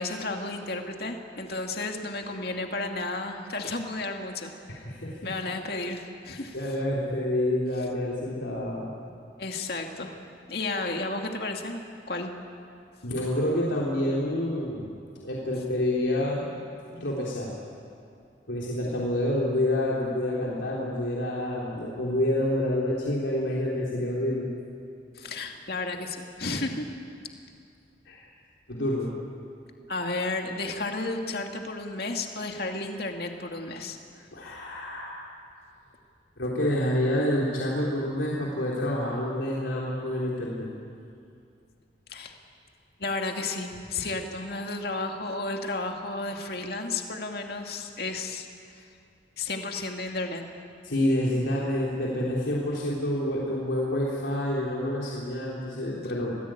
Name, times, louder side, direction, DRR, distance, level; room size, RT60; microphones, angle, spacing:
voice 1, 0.0-4.5 5.2-6.6 9.4-10.2 10.5-11.8 12.1-12.3 25.1-26.9 29.9-34.3 42.1-42.4 43.0-48.5 48.7-48.9 49.4-50.5, left 2 dB, 55° left, 3 dB, 2.2 m, -32 dB
voice 2, 4.7-5.2 6.5-8.9 13.0-15.0 15.2-16.5 17.0-17.6 18.5-24.5 28.1-28.2 28.7-29.1 34.3-35.1 36.4-40.7 44.0-44.1 50.8-56.4, left 1 dB, 85° left, -5 dB, 3.5 m, -28 dB
27.0 x 19.0 x 9.0 m, 2.5 s
head